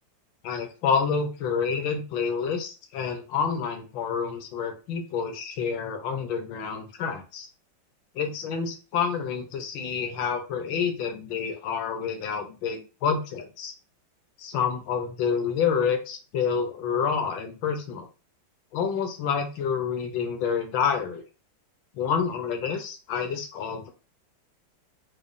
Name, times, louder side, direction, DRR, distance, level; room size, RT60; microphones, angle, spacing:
voice 1, 0.4-7.5 8.1-13.7 14.4-18.1 18.7-21.2 21.9-23.9, left 6 dB, 75° left, 5 dB, 1.5 m, -28 dB
5.1 x 2.3 x 2.5 m, 0.33 s
omnidirectional pair, 2.1 m